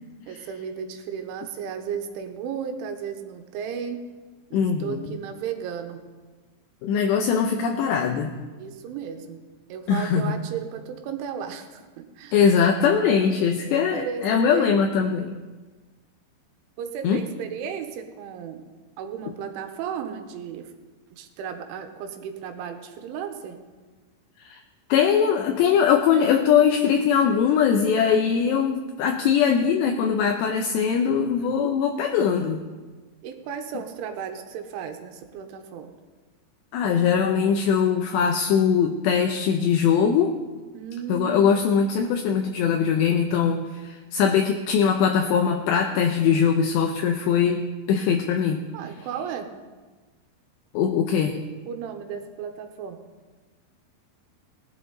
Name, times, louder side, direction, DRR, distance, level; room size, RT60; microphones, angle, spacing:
voice 1, 0.3-4.1 4.5-6.0 8.6-9.4 9.7-12.4 13.4-14.8 16.8-18.6 19.0-20.7 21.1-23.6 31.1-31.7 33.2-35.9 40.7-41.9 48.7-49.5 51.7-53.0, right 7 dB, 85° right, 6 dB, 3.5 m, -34 dB
voice 2, 4.5-5.2 6.8-8.4 9.9-10.4 12.3-15.3 17.0-17.2 24.4-24.6 24.9-32.6 36.7-40.3 41.1-48.6 50.7-51.4, left 7 dB, 80° left, 3 dB, 2.7 m, -21 dB
20.0 x 11.5 x 4.0 m, 1.3 s
omnidirectional pair, 5.4 m